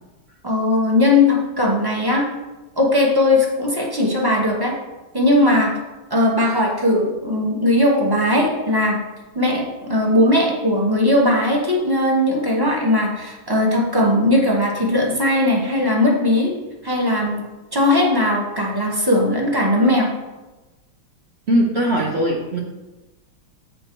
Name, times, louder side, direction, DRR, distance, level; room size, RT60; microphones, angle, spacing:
voice 1, 0.4-2.2 2.8-4.7 5.1-5.7 6.1-9.0 9.3-16.5 16.8-17.4 17.7-20.1, left 1 dB, 20° right, -2 dB, 0.6 m, -18 dB
voice 2, 21.5-22.6, right 1 dB, 60° right, -2 dB, 0.6 m, -19 dB
8.2 x 4.5 x 4.4 m, 1.1 s
omnidirectional pair, 2.3 m